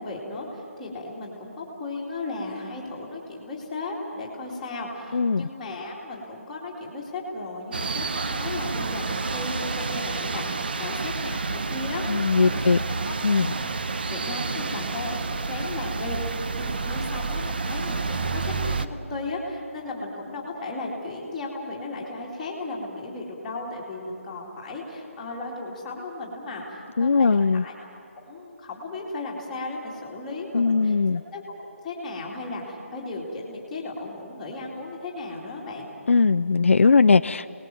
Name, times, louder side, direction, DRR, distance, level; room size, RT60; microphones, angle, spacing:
voice 1, 0.0-12.6 12.9-13.8 14.1-27.7 28.3-30.9 31.3-31.6 31.8-35.9, left 2 dB, 5° left, -7 dB, 2.4 m, -35 dB
voice 2, 5.1-5.5 12.1-12.8 13.2-13.5 27.0-27.6 30.5-31.2 36.1-37.5, left 4 dB, 60° left, 11 dB, 0.5 m, -19 dB
sound 1, 7.7-18.9, right 4 dB, 40° right, 0.8 m, -29 dB
28.5 x 19.5 x 7.6 m, 2.7 s
hypercardioid pair, 175°, 8 cm